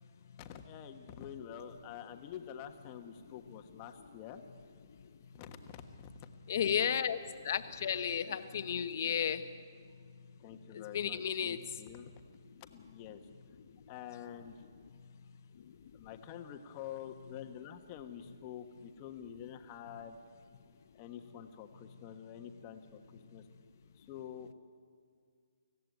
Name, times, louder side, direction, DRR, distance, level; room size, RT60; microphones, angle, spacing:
voice 1, 0.4-4.4 5.3-6.1 8.2-8.5 9.0-9.2 10.4-12.1 12.7-13.2 13.9-14.6 15.9-20.2 20.9-23.5 24.0-24.5, left 9 dB, 25° left, 6 dB, 1.3 m, -47 dB
voice 2, 6.5-9.5 10.7-11.8 13.6-13.8 15.5-15.9, left 8 dB, 45° left, 10 dB, 1.1 m, -34 dB
24.5 x 16.0 x 9.4 m, 2.1 s
hypercardioid pair, 165°, 2 cm